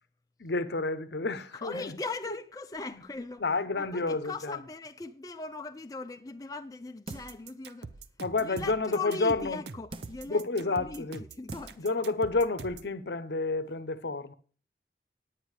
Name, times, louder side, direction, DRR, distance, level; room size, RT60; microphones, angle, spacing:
voice 1, 0.4-2.0 2.9-3.0 3.4-4.6 8.2-9.6 10.2-11.2 11.8-14.3, left 3 dB, 70° left, 0.8 m, -30 dB
voice 2, 1.5-3.5 3.8-7.9 8.4-11.9, left 3 dB, 20° left, 0.4 m, -40 dB
sound 1, 7.1-7.5 8.0-8.1 9.9-10.3 11.0-11.1 11.5-11.9 12.3-12.4, right 2 dB, 30° right, 0.5 m, -45 dB
sound 2, 7.1-12.9, right 4 dB, 70° right, 0.7 m, -44 dB
9.9 x 9.1 x 4.7 m
head